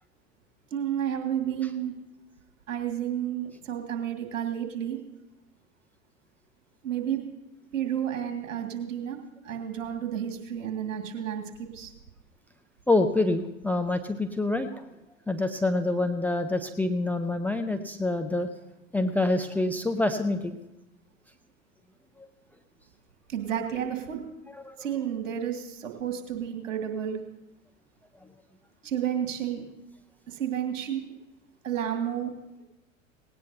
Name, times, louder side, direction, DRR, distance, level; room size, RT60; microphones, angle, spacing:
voice 1, 0.7-1.9 2.7-5.0 6.8-7.2 7.7-9.2 9.4-11.9 23.3-24.2 24.8-27.2 28.8-29.6 30.3-31.0 31.6-32.3, right 9 dB, 65° right, 4 dB, 2.2 m, -31 dB
voice 2, 12.9-14.9 15.3-18.5 18.9-20.6 24.5-24.8, left 2 dB, 5° left, 8 dB, 0.5 m, -26 dB
18.0 x 17.5 x 2.8 m, 0.94 s
figure-of-eight pair, 90°, 40 cm